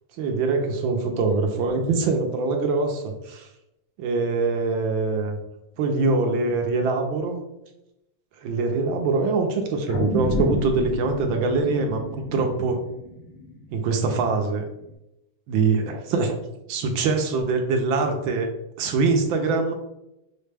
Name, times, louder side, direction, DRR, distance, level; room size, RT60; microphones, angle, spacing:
voice 1, 0.2-3.5 4.0-5.4 5.8-7.4 8.4-12.8 13.7-14.6 15.5-16.4 16.7-18.5 18.8-19.7, right 3 dB, 75° right, 4 dB, 1.3 m, -23 dB
sound 1, 9.9-14.4 14.8-14.9, left 1 dB, 65° left, 1.3 m, -31 dB
4.9 x 2.1 x 3.2 m, 0.86 s
omnidirectional pair, 2.4 m